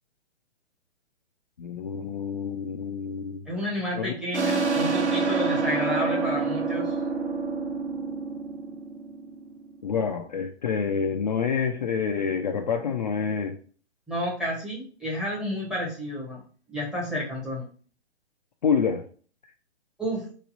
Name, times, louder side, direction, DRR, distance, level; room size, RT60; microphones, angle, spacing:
voice 1, 1.6-3.4 4.0-4.1 9.8-13.6 18.6-19.0, left 6 dB, 40° left, 3 dB, 0.4 m, -27 dB
voice 2, 3.5-6.9 14.1-16.4 16.7-17.7 20.0-20.2, equal, ahead, -6 dB, 0.7 m, -30 dB
sound 1, 4.3-9.7, right 4 dB, 75° right, 0.9 m, -27 dB
3.1 x 2.3 x 3.9 m, 0.41 s
figure-of-eight pair, 130°, 34 cm